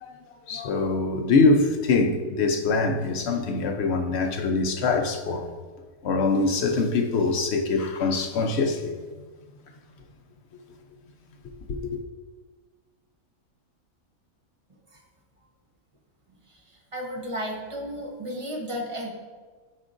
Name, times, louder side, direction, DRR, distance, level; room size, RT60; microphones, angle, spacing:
voice 1, 0.0-5.5 6.0-9.0 11.7-12.0, left 3 dB, 55° left, 0.8 m, -24 dB
voice 2, 16.4-19.1, equal, 25° right, 1.0 m, -34 dB
12.5 x 4.8 x 2.5 m
omnidirectional pair, 1.5 m